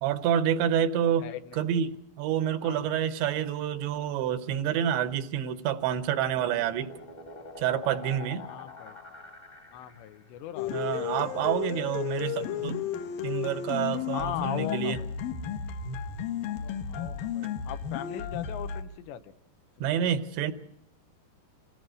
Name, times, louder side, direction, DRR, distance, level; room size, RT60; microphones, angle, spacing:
voice 1, 0.0-1.3 1.6-6.9 7.6-8.5 10.7-12.8 13.2-15.0 19.8-20.5, right 9 dB, 85° right, 11 dB, 3.3 m, -28 dB
voice 2, 1.2-1.6 2.6-2.9 8.4-9.0 9.7-11.4 14.1-15.1 16.4-19.3 19.8-19.9, left 11 dB, 85° left, 10 dB, 3.3 m, -39 dB
sound 1, 5.5-10.3, left 4 dB, 20° left, 1.1 m, -46 dB
sound 2, 10.6-18.8, left 9 dB, 70° left, 2.3 m, -33 dB
25.5 x 17.5 x 6.4 m, 0.75 s
omnidirectional pair, 5.1 m